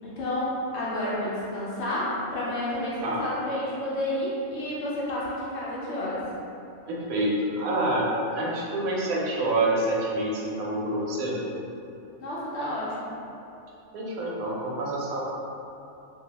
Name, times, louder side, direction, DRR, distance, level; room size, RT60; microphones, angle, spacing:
voice 1, 0.0-6.2 12.2-13.2, left 1 dB, 60° left, -8 dB, 0.8 m, -30 dB
voice 2, 6.9-11.4 13.9-15.2, right 1 dB, 90° right, -4 dB, 1.0 m, -27 dB
2.6 x 2.1 x 2.8 m, 2.7 s
omnidirectional pair, 1.4 m